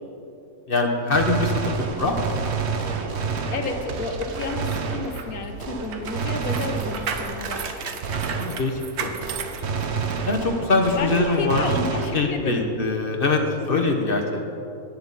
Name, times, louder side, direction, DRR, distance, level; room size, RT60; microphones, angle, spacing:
voice 1, 0.7-2.3 2.9-3.0 8.3-9.4 10.3-11.7 12.1-14.2, left 3 dB, 40° left, 3 dB, 1.2 m, -23 dB
Gunshot gunfire, 1.1-8.9 9.2-12.6, right 5 dB, 55° right, 1.1 m, -29 dB
voice 2, 3.5-7.7 10.9-12.7 13.6-14.0, left 4 dB, 70° left, 5 dB, 1.4 m, -31 dB
sound 1, 4.0-10.3 10.8-10.9, right 6 dB, 85° right, 1.4 m, -35 dB
17.0 x 10.5 x 4.1 m, 2.8 s
omnidirectional pair, 1.6 m